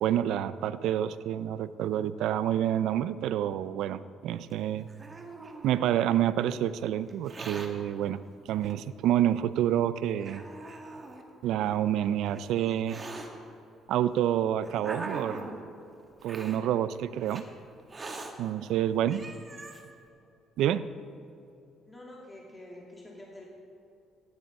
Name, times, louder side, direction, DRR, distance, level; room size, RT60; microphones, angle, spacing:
voice 1, 0.0-4.9 5.6-8.2 8.5-10.4 11.4-13.0 13.9-15.4 16.2-17.5 18.4-19.2 20.6-20.9, right 11 dB, 75° right, 15 dB, 0.5 m, -28 dB
Hiss, 4.5-6.2 7.1-7.7 8.7-8.8 9.6-9.7 10.2-11.2 12.1-13.3 14.1-15.6 16.2-16.6 17.3-17.4 17.9-18.3 18.8-18.9 19.1-19.8, right 3 dB, 25° right, 1.8 m, -42 dB
voice 2, 18.6-19.0 21.8-23.4, left 1 dB, 15° left, -3 dB, 2.6 m, -48 dB
15.5 x 10.5 x 5.4 m, 2.7 s
cardioid pair, 95°, 0 cm